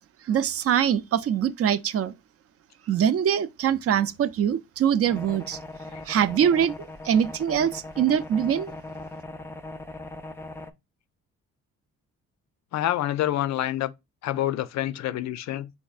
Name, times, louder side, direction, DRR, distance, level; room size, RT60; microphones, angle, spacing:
voice 1, 0.3-2.1 2.9-5.6 6.1-6.7 7.0-8.7, right 9 dB, 50° right, 0.5 m, -23 dB
sound 1, 5.0-10.7, left 2 dB, 10° left, 0.5 m, -40 dB
voice 2, 12.7-13.9 14.2-15.7, left 13 dB, 65° left, 0.5 m, -27 dB
4.3 x 4.2 x 2.4 m
cardioid pair, 90°, 30 cm